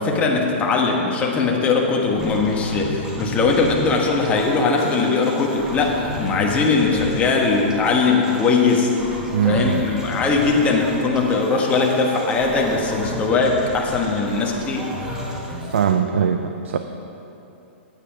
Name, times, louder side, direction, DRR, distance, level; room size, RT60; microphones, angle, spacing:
voice 1, 0.0-8.9 9.4-14.9, left 4 dB, 20° left, 0 dB, 1.2 m, -20 dB
sound 1, 2.2-15.9, equal, 10° right, 1.6 m, -33 dB
voice 2, 9.3-9.9 15.7-16.8, right 7 dB, 85° right, 7 dB, 0.5 m, -21 dB
8.9 x 8.7 x 4.9 m, 2.9 s
hypercardioid pair, 145°, 6 cm